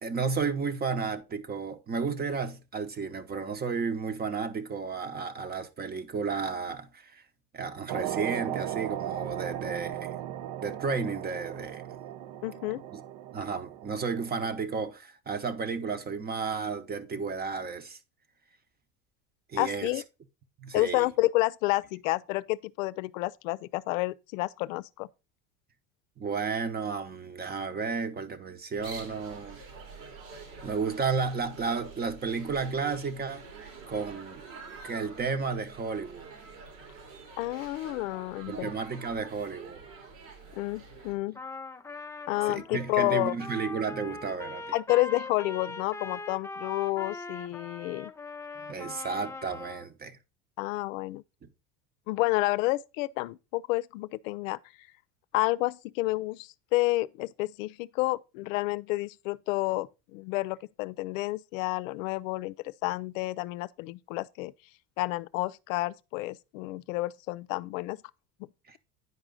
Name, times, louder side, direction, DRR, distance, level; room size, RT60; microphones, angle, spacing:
voice 1, 0.0-7.2 7.5-10.1 10.6-11.9 12.9-13.0 13.3-18.0 19.5-19.9 20.6-21.1 26.2-29.6 30.6-33.4 33.9-34.4 34.8-36.3 38.5-39.8 42.5-44.7 48.7-50.2 68.7-68.8, right 5 dB, 25° right, 0.9 m, -32 dB
sound 1, 7.9-14.5, right 12 dB, 65° right, 0.7 m, -37 dB
voice 2, 12.4-12.8 19.5-20.0 20.7-25.1 37.4-38.7 40.5-41.4 42.3-43.3 44.7-48.1 50.6-51.2 52.1-54.6 55.3-64.5 65.0-68.0, left 19 dB, 80° left, 0.6 m, -30 dB
sound 2, 28.8-41.1, right 4 dB, 85° right, 3.1 m, -46 dB
Trumpet, 41.3-49.9, left 3 dB, 10° left, 0.4 m, -41 dB
9.6 x 4.9 x 3.7 m
supercardioid pair, 105°, 38 cm